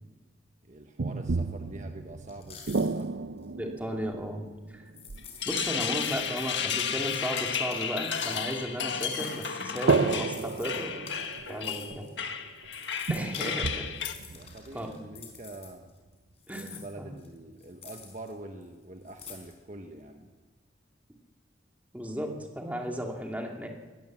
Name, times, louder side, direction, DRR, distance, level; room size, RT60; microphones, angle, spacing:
voice 1, 0.6-3.2 13.1-13.8 14.3-15.9 16.5-20.3, right 2 dB, 40° right, 4 dB, 1.3 m, -45 dB
sound 1, 1.0-5.7 9.9-12.2 12.6-12.7 13.1-15.4, right 4 dB, 85° right, 0.6 m, -32 dB
sound 2, 2.3-3.0 3.4-3.5 4.9-5.4 5.9-7.4 7.7-8.6 9.0-12.1 12.6-13.6 13.9-16.1 16.4-18.3 18.6-18.7 19.1-19.5, left 7 dB, 35° left, 4.6 m, -48 dB
voice 2, 3.6-4.4 4.7-4.8 5.4-11.0 11.5-12.1 13.1-13.9 14.7-14.9 16.5-17.1 21.9-23.7, equal, 10° right, 1 dB, 2.4 m, -35 dB
sound 3, 5.2-14.1, left 7 dB, 80° left, 1.6 m, -33 dB
22.5 x 18.5 x 7.5 m, 1.4 s
head